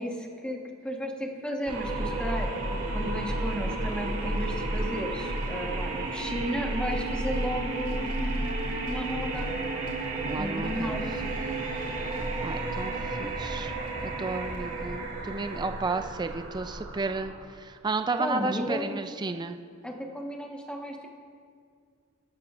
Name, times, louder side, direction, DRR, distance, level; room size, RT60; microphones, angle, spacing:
voice 1, 0.0-9.5 10.4-11.0 18.2-19.0 19.8-21.1, equal, 5° left, 1 dB, 1.2 m, -34 dB
sound 1, 1.7-17.6, right 2 dB, 75° right, 2.2 m, -32 dB
voice 2, 10.2-11.0 12.4-13.7 14.0-19.6, right 3 dB, 20° right, 7 dB, 0.3 m, -33 dB
21.0 x 12.0 x 2.5 m, 2.2 s
head